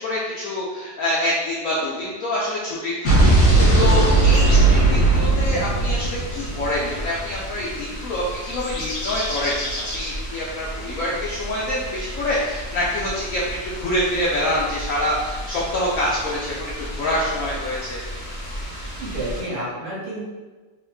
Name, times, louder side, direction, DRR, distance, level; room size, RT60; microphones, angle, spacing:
voice 1, 0.0-13.4 13.8-18.3, left 1 dB, 75° left, -6 dB, 0.8 m, -26 dB
Explosion, 3.0-7.1, right 2 dB, 55° left, 1.5 m, -17 dB
sound 1, 3.3-19.4, equal, 35° left, 0.9 m, -33 dB
voice 2, 3.6-4.1 19.0-20.3, right 1 dB, 65° right, -7 dB, 1.8 m, -30 dB
3.6 x 2.9 x 2.3 m, 1.3 s
omnidirectional pair, 1.9 m